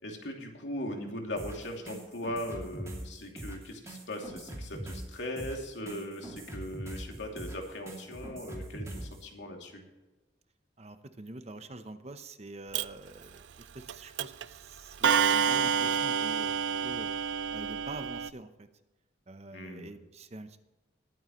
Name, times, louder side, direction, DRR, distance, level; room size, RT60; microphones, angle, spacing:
voice 1, 0.0-9.8 19.5-19.9, left 1 dB, 75° left, 1 dB, 2.8 m, -39 dB
sound 1, 1.4-9.2, right 1 dB, 15° right, 2.6 m, -42 dB
voice 2, 10.8-16.6 16.8-17.1 17.5-18.7 19.3-20.6, right 2 dB, 35° right, 9 dB, 0.8 m, -46 dB
Clock, 12.7-12.8 13.9-14.0 14.2-14.5 15.0-18.3, right 7 dB, 75° right, 0.5 m, -28 dB
21.0 x 9.2 x 3.1 m, 1.1 s
head